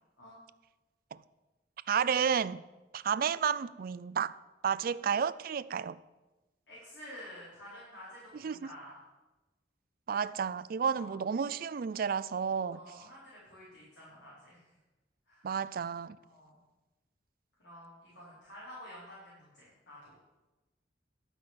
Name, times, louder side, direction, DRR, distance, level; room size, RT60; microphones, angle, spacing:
voice 1, 1.9-2.6 2.9-4.3 4.6-6.0 8.4-8.7 10.1-12.8 15.4-16.2, right 7 dB, 50° right, 0.4 m, -31 dB
voice 2, 6.7-9.0 10.8-11.1 12.7-14.7 15.3-15.4 16.2-16.6 17.6-20.1, equal, 75° left, 4.5 m, -50 dB
12.0 x 5.7 x 7.6 m
head